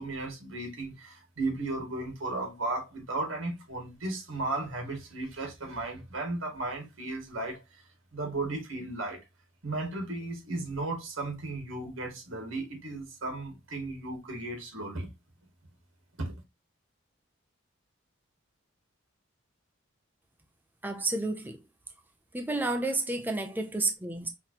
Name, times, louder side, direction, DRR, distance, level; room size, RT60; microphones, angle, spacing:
voice 1, 0.0-7.8 8.1-9.2 9.6-15.1 16.2-16.3, right 2 dB, 85° right, 2.2 m, -35 dB
voice 2, 20.8-21.6 22.3-24.3, right 2 dB, 10° right, 0.5 m, -30 dB
5.8 x 3.1 x 2.9 m
head